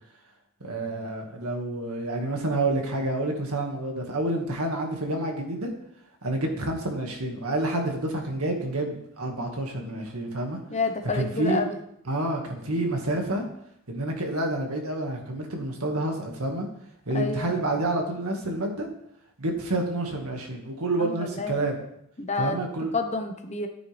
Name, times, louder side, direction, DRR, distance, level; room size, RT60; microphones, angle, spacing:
voice 1, 0.6-5.7 6.2-10.6 11.1-11.6 12.1-13.4 13.9-16.7 17.1-18.9 19.4-21.8 22.4-22.9, right 2 dB, 85° right, 2 dB, 2.0 m, -28 dB
voice 2, 10.7-11.8 17.1-17.5 21.0-21.6 22.2-22.6 22.9-23.7, left 3 dB, 30° left, 5 dB, 1.1 m, -29 dB
13.0 x 9.1 x 3.5 m, 0.73 s
head